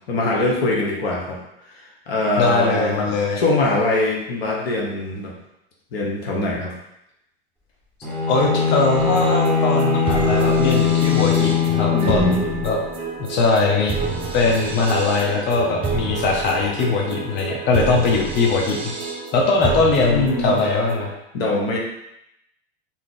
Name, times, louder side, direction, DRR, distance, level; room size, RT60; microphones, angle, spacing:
voice 1, 0.1-1.4 2.1-3.1 3.4-5.3 5.9-6.7 11.9-12.6 20.0-20.6 21.3-21.8, left 2 dB, 75° left, -2 dB, 1.0 m, -22 dB
voice 2, 2.4-3.4 8.3-12.3 12.6-12.8 13.2-13.9 14.3-18.9 19.3-21.1, left 3 dB, 35° left, 0 dB, 0.7 m, -20 dB
Bowed string instrument, 8.0-12.9, left 6 dB, 5° left, 1.3 m, -21 dB
sound 1, 8.9-21.1, right 4 dB, 20° right, 0.5 m, -28 dB
2.7 x 2.3 x 3.8 m, 0.81 s
hypercardioid pair, 90°, 30 cm